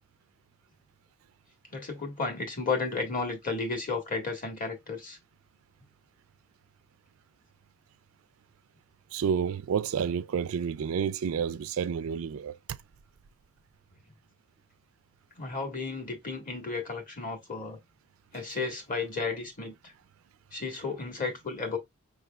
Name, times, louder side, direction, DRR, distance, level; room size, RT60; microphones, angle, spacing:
voice 1, 1.7-5.2 15.4-17.8 18.3-19.9 20.5-21.8, left 4 dB, 40° left, 1.5 m, -33 dB
voice 2, 9.1-12.8, right 7 dB, 75° right, 0.3 m, -30 dB
5.5 x 3.1 x 2.3 m
head